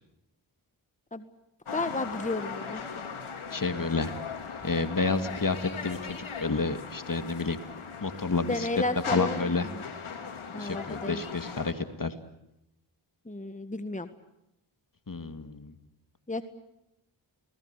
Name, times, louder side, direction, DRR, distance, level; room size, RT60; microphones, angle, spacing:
sound 1, 1.7-11.7, left 6 dB, 85° left, 3.1 m, -39 dB
voice 1, 1.7-2.8 8.5-9.8 10.5-11.2 13.3-14.1 16.3-16.4, left 2 dB, 15° left, 10 dB, 1.7 m, -32 dB
voice 2, 3.5-4.1 4.6-7.6 8.0-8.7 9.1-9.7 10.5-12.1 15.1-15.7, left 3 dB, 40° left, 9 dB, 2.2 m, -30 dB
29.5 x 19.0 x 8.2 m, 0.84 s
cardioid pair, 40°, 48 cm